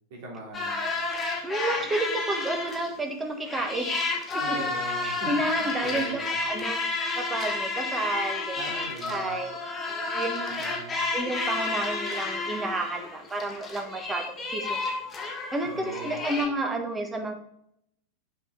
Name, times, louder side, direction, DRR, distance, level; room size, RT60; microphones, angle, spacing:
voice 1, 0.1-0.9 4.4-5.3 5.6-6.4 8.5-9.4 10.6-11.0 15.6-16.3, right 1 dB, 50° right, -2 dB, 3.1 m, -40 dB
sound 1, 0.5-3.0 3.4-16.5, left 3 dB, 15° left, 1.7 m, -31 dB
voice 2, 1.4-4.4 5.0-6.2 6.5-6.8 7.1-8.7 9.1-9.6 9.9-10.7 11.1-14.9 15.5-17.3, right 2 dB, 15° right, 4 dB, 1.4 m, -31 dB
7.1 x 6.3 x 3.8 m, 0.71 s
figure-of-eight pair, 90°, 0 cm